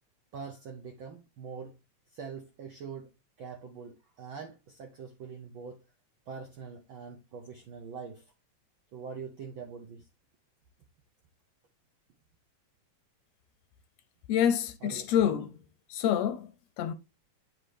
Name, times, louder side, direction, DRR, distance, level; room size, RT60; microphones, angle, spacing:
voice 1, 0.3-1.7 2.1-3.1 3.4-5.8 6.3-8.2 8.9-10.0 14.8-15.1, right 6 dB, 75° right, 1.1 m, -43 dB
voice 2, 14.3-15.6 15.9-16.5 16.8-16.9, left 9 dB, 80° left, 1.6 m, -27 dB
8.5 x 4.4 x 3.4 m
omnidirectional pair, 3.3 m